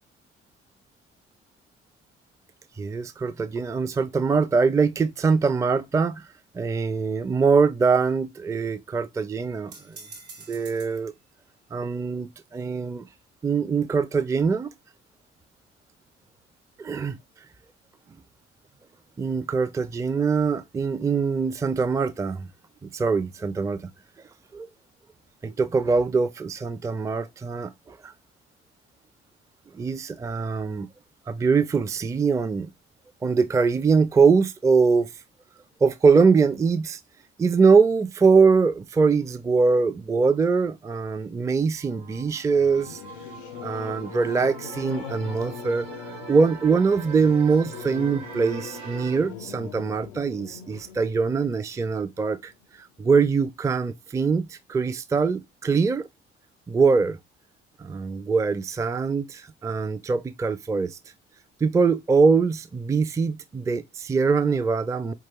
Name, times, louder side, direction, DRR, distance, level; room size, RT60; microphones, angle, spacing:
voice 1, 2.8-6.3 6.5-10.0 10.5-11.1 11.7-13.1 13.4-14.7 16.8-17.2 19.2-22.5 22.8-23.8 24.5-24.7 25.4-28.1 29.7-30.9 31.3-32.7 33.2-35.1 35.8-37.0 37.4-43.0 43.6-52.5 52.8-56.0 56.7-57.2 57.8-61.0 61.6-65.1, right 5 dB, 10° right, 0.4 m, -23 dB
sound 1, 9.7-11.0, right 4 dB, 80° right, 1.1 m, -45 dB
sound 2, 41.7-49.2, right 5 dB, 60° right, 1.0 m, -42 dB
Singing / Musical instrument, 42.6-52.7, left 8 dB, 80° left, 0.5 m, -41 dB
4.4 x 2.3 x 2.9 m
figure-of-eight pair, 45°, 32 cm